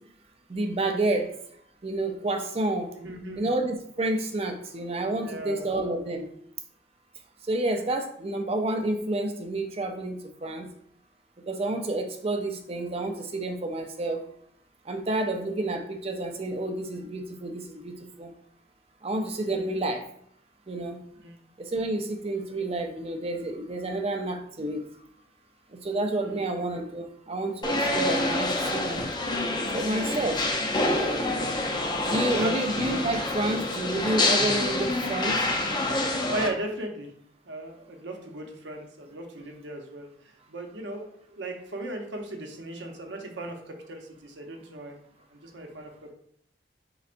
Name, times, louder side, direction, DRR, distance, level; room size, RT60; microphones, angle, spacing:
voice 1, 0.5-1.3 1.8-2.9 3.4-6.2 7.5-10.7 11.5-14.3 14.9-18.3 19.0-20.0 20.7-21.0 21.6-24.8 25.7-29.0 29.7-30.4 32.1-35.4, right 2 dB, 35° right, 4 dB, 0.5 m, -29 dB
voice 2, 2.9-3.5 5.2-5.6 19.4-19.7 21.2-21.3 26.2-26.5 32.3-32.5 35.9-37.1 37.5-40.1 40.5-45.0 45.3-46.1, right 1 dB, 75° right, 3 dB, 0.8 m, -37 dB
sound 1, 27.6-36.5, left 2 dB, 25° left, 0.5 m, -27 dB
4.3 x 3.9 x 2.5 m, 0.68 s
head